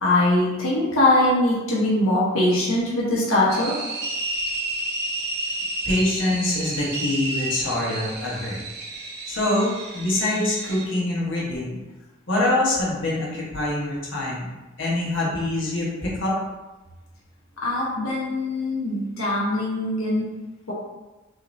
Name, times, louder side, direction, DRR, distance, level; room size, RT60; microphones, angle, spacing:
voice 1, 0.0-3.7 17.6-20.3 20.7-20.8, left 1 dB, 90° left, -6 dB, 1.1 m, -22 dB
sound 1, 3.5-10.8, right 2 dB, 55° right, 0.8 m, -31 dB
voice 2, 5.8-8.6 9.3-11.8 12.3-14.5 14.8-16.4, left 1 dB, 65° left, -5 dB, 1.3 m, -24 dB
6.2 x 2.8 x 2.7 m, 1.1 s
head